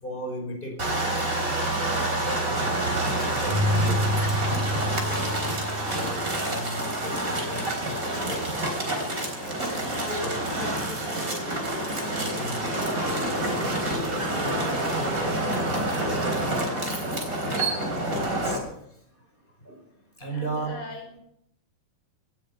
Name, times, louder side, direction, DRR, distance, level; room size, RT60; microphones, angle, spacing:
voice 1, 0.0-2.8 3.1-4.1 4.8-5.5 5.9-8.6 9.2-11.5 12.0-15.0 15.8-16.5 16.9-17.1 17.7-17.9 18.2-18.8 19.7-19.8 20.2-20.7, right 1 dB, 15° left, 2 dB, 5.4 m, -37 dB
sound 1, 0.8-18.6, right 1 dB, 25° right, 4.1 m, -28 dB
Keyboard (musical), 3.5-7.0, left 1 dB, 70° right, 2.7 m, -29 dB
voice 2, 5.0-5.5 16.1-16.6 20.3-21.2, left 1 dB, 70° left, 3 dB, 6.0 m, -43 dB
18.0 x 12.5 x 5.7 m, 0.72 s
omnidirectional pair, 3.7 m